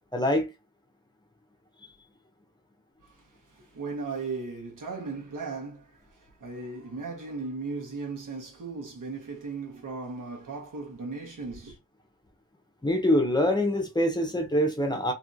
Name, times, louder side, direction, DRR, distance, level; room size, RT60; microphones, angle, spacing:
voice 1, 0.1-0.5 12.8-15.1, left 1 dB, 15° left, 0.6 m, -24 dB
voice 2, 3.0-11.8, right 4 dB, 85° right, 1.2 m, -37 dB
2.9 x 2.7 x 2.5 m
wide cardioid pair, 170°, 31 cm